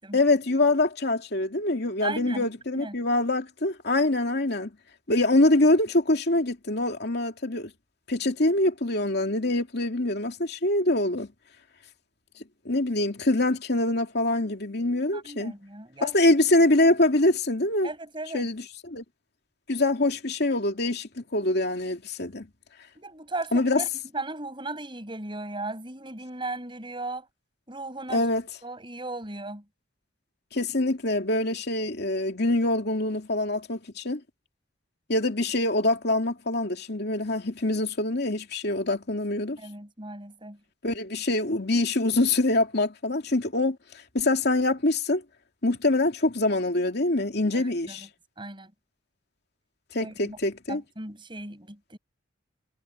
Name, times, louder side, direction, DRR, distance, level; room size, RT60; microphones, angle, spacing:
voice 1, 0.1-4.7 5.1-7.7 8.1-11.3 12.6-15.5 16.0-17.9 18.3-19.0 19.7-22.5 23.5-23.8 28.1-28.4 30.5-34.2 35.1-39.6 40.8-43.8 44.1-45.2 45.6-48.1 49.9-50.8, left 2 dB, 60° left, 2.7 m, -24 dB
voice 2, 2.0-2.5 2.7-3.0 15.1-16.2 17.8-18.5 23.0-23.9 24.1-27.3 27.7-28.2 28.6-29.6 39.6-40.6 47.5-48.1 48.4-48.7 50.0-50.4 50.7-52.0, right 2 dB, 25° right, 6.9 m, -36 dB
head